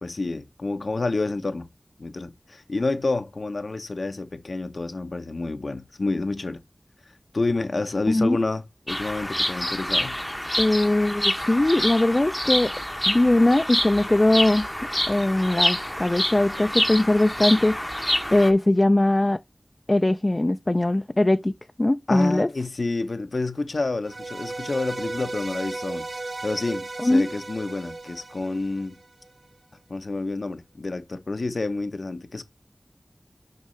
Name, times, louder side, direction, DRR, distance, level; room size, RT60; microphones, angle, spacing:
voice 1, 0.0-1.7 2.0-6.6 7.3-10.2 22.1-26.1 26.4-28.9 29.9-32.4, left 3 dB, 85° left, 0.9 m, -29 dB
voice 2, 8.1-8.4 10.6-12.7 13.1-14.7 15.1-19.4 19.9-21.5 21.8-22.5 27.0-27.3, left 1 dB, 40° left, 0.4 m, -21 dB
Bird vocalization bird call bird song, 8.9-18.5, equal, 10° left, 0.8 m, -27 dB
sound 1, 24.0-29.3, right 2 dB, 75° right, 0.6 m, -35 dB
6.7 x 5.4 x 3.2 m
wide cardioid pair, 45°, 0 cm